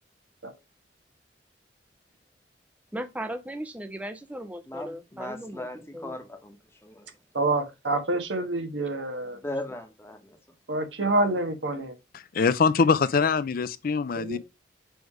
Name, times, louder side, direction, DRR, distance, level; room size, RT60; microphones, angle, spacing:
voice 1, 2.9-6.2, right 1 dB, 10° right, 0.5 m, -37 dB
voice 2, 4.7-6.6 6.8-7.1 9.4-10.4, left 1 dB, 15° left, 1.0 m, -38 dB
voice 3, 7.3-9.4 10.7-11.9 14.1-14.4, right 2 dB, 80° right, 1.4 m, -27 dB
voice 4, 12.3-14.4, left 5 dB, 50° left, 0.4 m, -23 dB
6.2 x 3.3 x 4.8 m
head